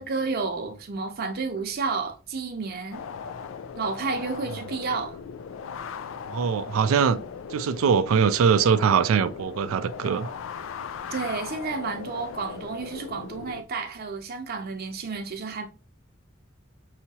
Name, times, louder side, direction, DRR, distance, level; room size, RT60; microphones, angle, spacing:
voice 1, 0.0-3.0 3.8-5.2 11.1-15.6, right 4 dB, 50° right, 0.7 m, -31 dB
sound 1, 2.9-13.6, left 6 dB, 70° left, 0.4 m, -38 dB
voice 2, 6.3-7.2 7.5-10.3, right 6 dB, 90° right, 0.4 m, -22 dB
5.5 x 2.8 x 2.8 m
head